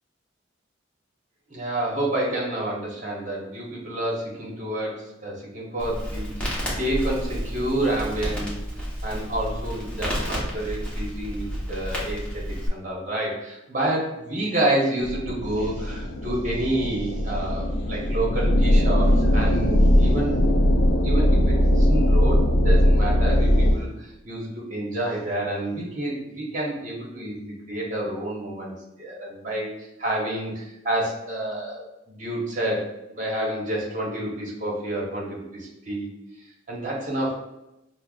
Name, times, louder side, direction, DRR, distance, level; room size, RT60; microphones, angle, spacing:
voice 1, 1.5-8.5 9.0-12.2 12.7-20.6 21.0-29.7 30.0-36.1 36.7-37.4, right 1 dB, 45° right, -4 dB, 1.2 m, -29 dB
Crackle, 5.8-12.7, equal, 5° left, 0.9 m, -31 dB
sound 1, 15.0-23.7, equal, 65° left, 0.5 m, -20 dB
5.6 x 2.1 x 2.4 m, 0.90 s
head